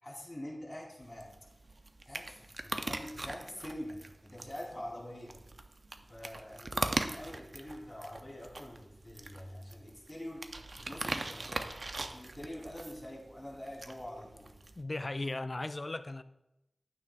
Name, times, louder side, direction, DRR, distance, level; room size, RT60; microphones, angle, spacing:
voice 1, 0.0-1.3 2.1-5.4 6.1-14.5, left 1 dB, 20° left, 3.6 m, -45 dB
sound 1, 1.0-14.8, right 2 dB, 65° right, 0.6 m, -41 dB
voice 2, 14.8-16.2, left 2 dB, 45° left, 0.4 m, -36 dB
11.5 x 9.1 x 2.5 m
wide cardioid pair, 75°, 0 cm